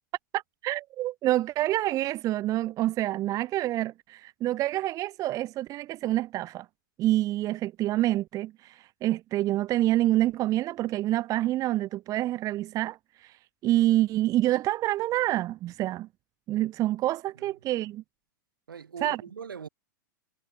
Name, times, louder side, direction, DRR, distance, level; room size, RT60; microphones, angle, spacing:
voice 1, 0.3-6.7 7.0-13.3 13.6-16.1 16.5-18.0 19.0-19.2, right 15 dB, 30° right, 0.6 m, -27 dB
voice 2, 18.7-19.7, right 7 dB, 80° right, 3.0 m, -41 dB
hypercardioid pair, 105°, 11 cm